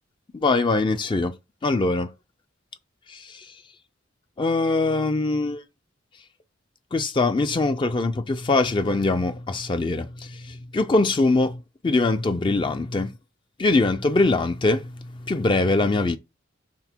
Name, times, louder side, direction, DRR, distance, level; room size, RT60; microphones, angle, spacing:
voice 1, 0.3-1.4 1.6-2.1 3.1-3.6 4.4-5.6 6.9-13.2 13.6-16.2, left 3 dB, 25° left, 0.4 m, -23 dB
6.0 x 3.5 x 4.4 m
head